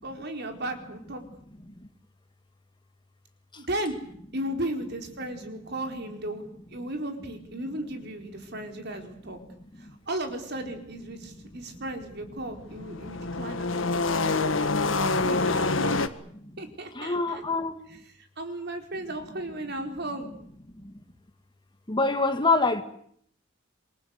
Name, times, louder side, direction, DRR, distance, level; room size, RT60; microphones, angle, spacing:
voice 1, 0.0-1.2 3.6-4.0 4.3-6.4 6.7-9.4 9.8-16.0 16.6-17.4 18.4-20.4, right 1 dB, 60° right, 4.3 m, -35 dB
sound 1, 12.0-16.1, left 3 dB, 80° left, 1.7 m, -26 dB
voice 2, 17.0-17.8 21.9-22.8, left 3 dB, 25° left, 1.9 m, -24 dB
27.0 x 21.5 x 8.2 m
head